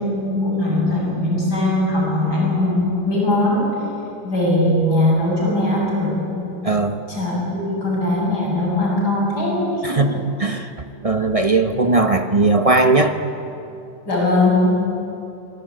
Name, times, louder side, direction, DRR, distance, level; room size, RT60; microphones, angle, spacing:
voice 1, 0.0-3.8 4.2-6.6 7.1-10.0 14.0-14.9, left 1 dB, 55° left, -3 dB, 8.5 m, -20 dB
voice 2, 6.6-7.0 9.8-10.7 11.0-13.2, right 3 dB, 30° right, 7 dB, 0.7 m, -18 dB
25.5 x 19.5 x 9.3 m, 2.8 s
omnidirectional pair, 2.1 m